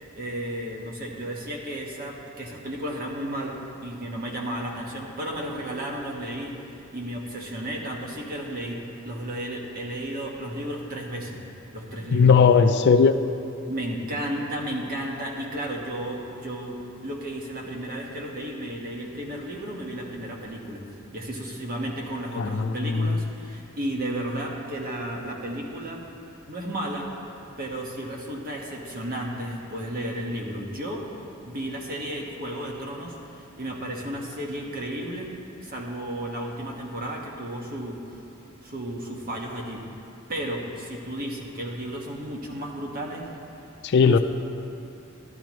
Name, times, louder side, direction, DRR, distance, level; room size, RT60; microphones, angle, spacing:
voice 1, 0.2-6.6 6.9-11.4 11.7-12.4 13.7-20.8 21.1-26.0 26.5-27.1 27.6-31.0 31.4-35.3 35.6-38.2 38.6-39.8 40.3-43.2 44.0-44.2, right 1 dB, 45° right, -1 dB, 1.4 m, -33 dB
voice 2, 12.1-13.2 22.4-23.0 43.9-44.2, left 5 dB, 55° left, 9 dB, 0.4 m, -18 dB
13.5 x 11.5 x 3.1 m, 2.6 s
head